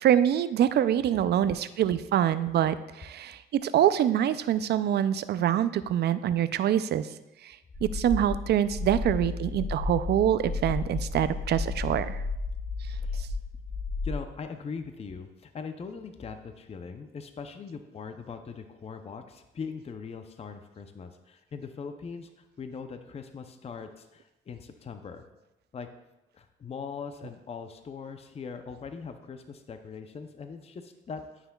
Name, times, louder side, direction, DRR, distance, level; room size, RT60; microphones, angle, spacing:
voice 1, 0.0-7.1 7.8-12.2, right 10 dB, 55° right, 14 dB, 0.4 m, -25 dB
voice 2, 1.1-1.5 13.0-13.2 14.0-22.3 22.6-25.2 25.7-25.9 26.3-31.2, left 5 dB, 30° left, 8 dB, 0.5 m, -41 dB
sound 1, 7.7-14.1, left 4 dB, 15° left, 1.1 m, -33 dB
9.3 x 5.8 x 2.3 m, 0.96 s
cardioid pair, 90°, 20 cm